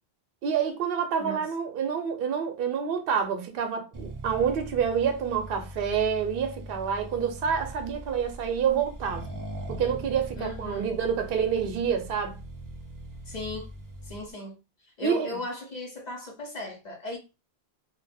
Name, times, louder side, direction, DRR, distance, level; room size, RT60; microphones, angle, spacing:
voice 1, 0.4-9.2 9.7-12.4 15.0-15.4, right 7 dB, 65° right, 0.7 m, -28 dB
voice 2, 1.2-1.5 10.4-10.9 13.3-13.7 14.0-17.2, left 2 dB, 50° left, 0.7 m, -37 dB
Accelerating revving vroom, 3.9-14.3, right 1 dB, 30° right, 0.3 m, -41 dB
2.4 x 2.1 x 3.4 m
omnidirectional pair, 1.1 m